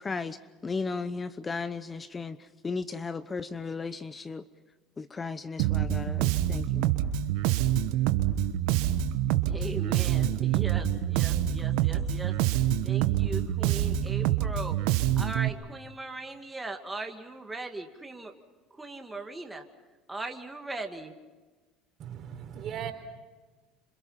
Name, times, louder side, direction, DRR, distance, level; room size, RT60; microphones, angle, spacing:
voice 1, 0.0-2.4 2.6-4.4 5.0-6.9, left 4 dB, 25° left, 14 dB, 0.9 m, -35 dB
Bass guitar, 5.6-15.5, right 12 dB, 75° right, 1.3 m, -26 dB
voice 2, 9.4-14.8 15.2-18.3 18.7-19.6 20.1-21.1, right 2 dB, 10° right, 3 dB, 2.2 m, -39 dB
voice 3, 22.0-22.9, right 9 dB, 50° right, 6 dB, 4.0 m, -37 dB
27.5 x 26.5 x 5.7 m, 1.2 s
supercardioid pair, 90°, 0 cm